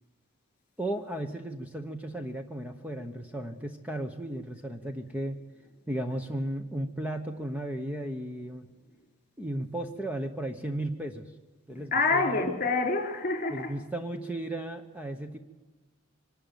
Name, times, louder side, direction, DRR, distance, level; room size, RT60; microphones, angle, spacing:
voice 1, 0.8-5.4 5.9-8.7 9.4-11.3 11.7-12.5 13.5-15.4, right 1 dB, 5° right, 1.0 m, -35 dB
voice 2, 11.7-13.7, left 3 dB, 40° left, 3.7 m, -27 dB
25.0 x 12.0 x 9.2 m
head